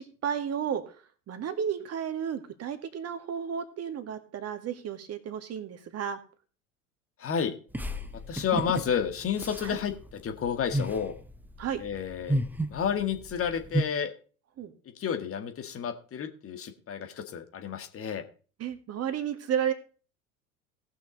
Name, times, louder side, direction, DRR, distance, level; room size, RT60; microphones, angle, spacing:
voice 1, 0.0-6.2 9.6-9.8 11.6-11.8 14.6-14.7 18.6-19.7, right 8 dB, 35° right, 9 dB, 1.9 m, -33 dB
voice 2, 7.2-7.5 8.3-11.1 11.8-12.4 12.7-14.1 15.0-18.2, left 7 dB, 30° left, 7 dB, 1.8 m, -31 dB
sound 1, 7.7-13.8, right 1 dB, 5° right, 0.9 m, -33 dB
18.0 x 6.3 x 4.0 m, 0.38 s
figure-of-eight pair, 75°, 42 cm